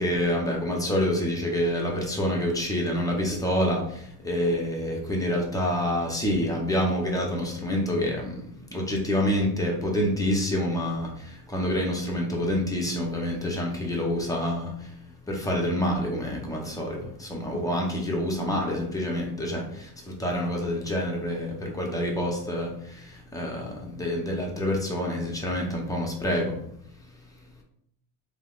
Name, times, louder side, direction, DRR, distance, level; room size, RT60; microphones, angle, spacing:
voice 1, 0.0-15.0 15.3-26.6, left 1 dB, 10° left, -1 dB, 0.7 m, -27 dB
3.3 x 2.9 x 2.4 m, 0.70 s
cardioid pair, 110°, 41 cm